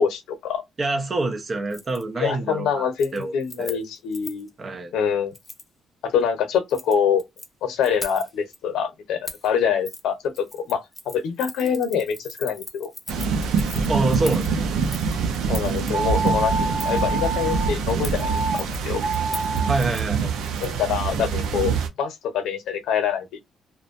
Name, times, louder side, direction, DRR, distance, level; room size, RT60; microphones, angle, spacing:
voice 1, 0.0-0.6 2.2-4.5 4.9-5.3 6.0-7.2 7.6-12.9 15.5-16.5 16.8-19.0 20.6-23.4, left 7 dB, 85° left, 0.7 m, -25 dB
voice 2, 0.8-3.3 3.6-3.8 4.6-4.9 13.9-14.4 19.7-20.3, right 2 dB, 35° right, 0.8 m, -26 dB
Keys jangling, 1.7-2.0 2.4-2.6 2.9-4.5 5.3-5.7 6.5-7.5 7.8-8.6 9.2-9.5 9.8-10.0 10.3-15.9 16.8-17.1 17.9-20.9 21.2-21.3, left 2 dB, 15° left, 0.6 m, -40 dB
sound 1, 13.1-21.9, right 5 dB, 85° right, 0.5 m, -25 dB
sound 2, 15.9-17.7 18.2-18.6 18.9-19.8, right 3 dB, 65° right, 1.0 m, -27 dB
2.5 x 2.2 x 2.5 m
cardioid pair, 90°, 0 cm